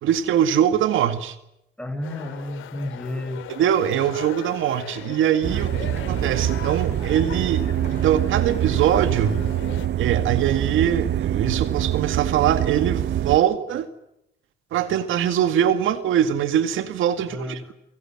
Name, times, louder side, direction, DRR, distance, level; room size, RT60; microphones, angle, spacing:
voice 1, 0.0-1.4 3.6-9.4 10.0-13.9 14.7-17.6, right 10 dB, 80° right, 2.1 m, -22 dB
voice 2, 1.8-3.5 17.3-17.7, left 1 dB, 5° left, 6.8 m, -32 dB
sound 1, 2.0-9.9, left 10 dB, 80° left, 2.8 m, -39 dB
sound 2, 5.4-13.4, right 11 dB, 55° right, 1.0 m, -25 dB
29.5 x 23.5 x 7.5 m
cardioid pair, 90°, 20 cm